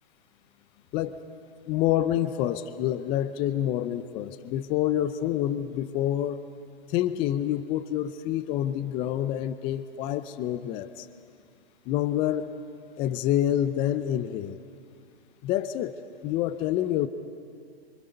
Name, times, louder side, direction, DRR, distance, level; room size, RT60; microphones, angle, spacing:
voice 1, 1.7-6.4 6.9-11.1 11.9-12.5 13.0-14.6 15.4-16.0 16.2-17.1, left 12 dB, 15° left, 13 dB, 0.5 m, -27 dB
28.5 x 25.5 x 5.3 m, 2.3 s
hypercardioid pair, 135°, 31 cm